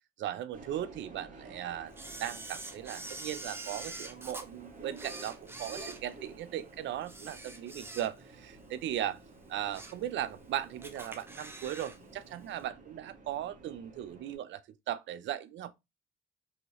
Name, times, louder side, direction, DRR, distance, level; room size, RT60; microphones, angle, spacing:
voice 1, 0.2-1.9 2.2-9.2 9.5-14.6 14.9-15.7, right 11 dB, 70° right, 0.4 m, -37 dB
Subway metro underground, 0.5-14.4, right 2 dB, 40° right, 1.1 m, -52 dB
Camera, 2.0-4.5 4.9-6.6 7.0-8.4 8.8-8.9 9.4-10.1 10.4-10.5 10.8-12.0 12.2-12.3, right 2 dB, 10° right, 0.5 m, -45 dB
2.8 x 2.7 x 3.0 m
cardioid pair, 90°, 20 cm